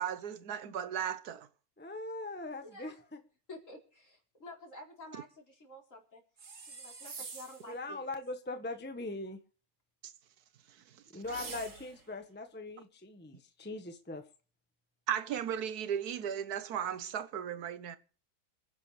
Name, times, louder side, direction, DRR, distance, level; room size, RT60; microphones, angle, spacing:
voice 1, 0.0-1.5 15.1-18.0, right 9 dB, 85° right, 1.4 m, -35 dB
voice 2, 1.8-3.2 7.6-9.4 11.1-14.2, left 2 dB, 10° left, 1.1 m, -41 dB
voice 3, 2.6-2.9 3.5-6.2 6.7-8.0, left 1 dB, 55° left, 4.5 m, -50 dB
sound 1, 6.4-7.7 11.2-12.1, right 4 dB, 55° right, 2.1 m, -46 dB
27.0 x 10.5 x 3.3 m
omnidirectional pair, 1.6 m